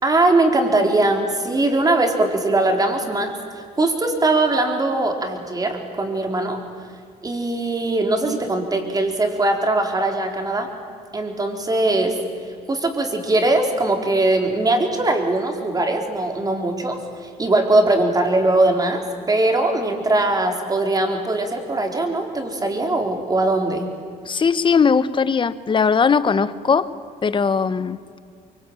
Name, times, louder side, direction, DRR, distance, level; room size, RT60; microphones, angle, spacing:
voice 1, 0.0-3.3 3.8-6.6 7.2-10.7 11.1-12.2 12.7-23.9, right 2 dB, 20° right, 4 dB, 4.1 m, -20 dB
voice 2, 24.2-26.9 27.2-28.0, left 5 dB, 30° left, 14 dB, 1.1 m, -19 dB
24.0 x 24.0 x 9.0 m, 2.2 s
cardioid pair, 110°, 17 cm